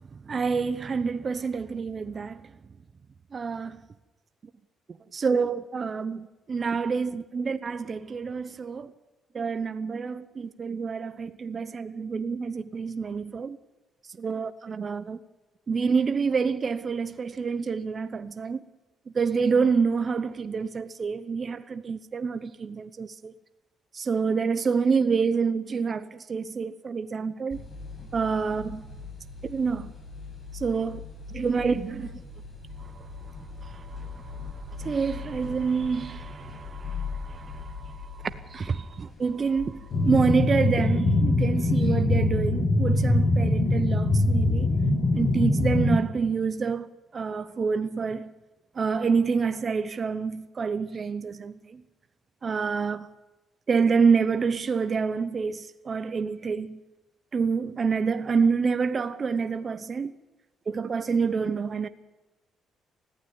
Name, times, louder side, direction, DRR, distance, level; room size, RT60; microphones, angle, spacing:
voice 1, 0.1-2.5 3.3-3.8 5.1-8.9 9.3-13.6 14.2-15.2 15.7-18.6 19.1-23.3 23.9-27.6 28.1-28.8 29.4-29.9 30.5-32.2 32.8-33.1 33.6-44.7 45.1-48.3 48.7-51.8 52.4-53.1 53.7-56.8 57.3-60.1 60.7-61.9, right 5 dB, 40° right, 0.9 m, -27 dB
sound 1, 27.5-40.1, left 4 dB, 35° left, 7.9 m, -40 dB
sound 2, 39.9-46.0, left 2 dB, 55° left, 6.9 m, -23 dB
20.0 x 15.0 x 9.6 m
cardioid pair, 90°, 0 cm